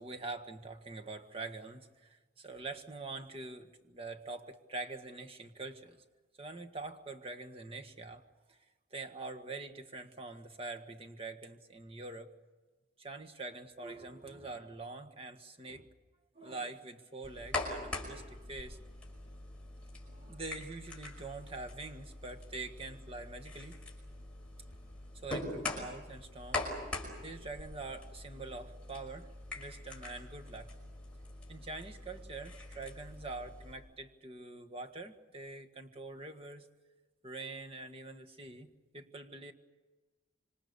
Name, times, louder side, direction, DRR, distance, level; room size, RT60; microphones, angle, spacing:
voice 1, 0.0-6.0 6.4-8.2 8.5-8.6 8.9-12.3 13.0-15.9 16.3-18.8 20.0-23.8 25.2-26.7 27.2-30.7 31.5-36.7 37.2-39.5, right 3 dB, 30° right, 5 dB, 1.6 m, -45 dB
sound 1, 17.2-33.7, left 2 dB, 5° left, 5.7 m, -43 dB
26.5 x 25.5 x 6.9 m, 1.2 s
head